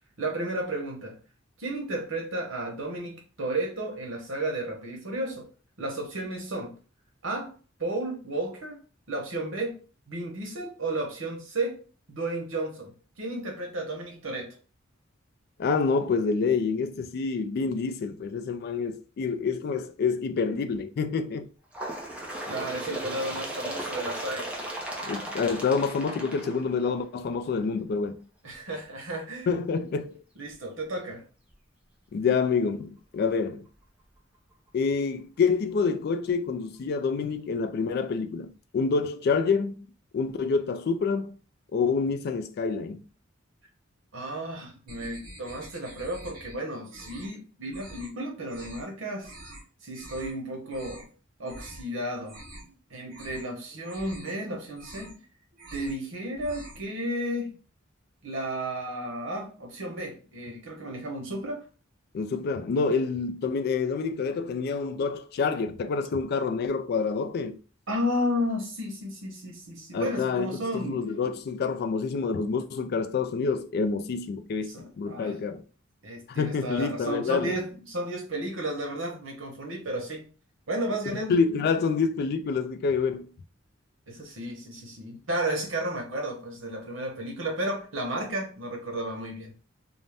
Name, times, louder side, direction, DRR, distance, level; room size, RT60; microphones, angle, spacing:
voice 1, 0.2-1.2 1.6-5.5 5.8-6.7 7.2-7.5 7.8-8.8 9.1-9.8 10.1-11.8 12.1-14.5 22.5-24.5 28.4-29.6 30.4-31.2 44.1-49.3 49.8-51.1 51.4-52.4 52.9-55.2 55.7-57.6 58.2-61.6 67.9-71.0 74.7-75.4 76.0-80.3 80.7-81.4 84.1-89.5, right 1 dB, 75° right, 1.0 m, -33 dB
voice 2, 15.6-21.5 25.0-28.2 29.5-30.1 32.1-33.7 34.7-39.9 40.1-41.3 41.7-43.0 62.1-67.6 69.9-75.6 76.3-77.5 81.3-83.3, left 5 dB, 55° left, 0.3 m, -27 dB
Bird, 21.7-27.2 28.0-28.2 28.5-28.6 29.5-29.6 30.5-30.6 31.5-31.6, right 1 dB, 5° right, 0.6 m, -36 dB
sound 1, 44.9-46.5 46.8-47.4 47.7-48.1 48.5-48.9 49.2-49.6 49.9-50.3 50.6-51.1 51.4-51.8 52.2-52.8 53.1-53.5 53.8-54.3 54.7-55.2 55.5-56.0 56.3-56.9, right 1 dB, 50° right, 1.0 m, -46 dB
2.6 x 2.1 x 3.3 m
head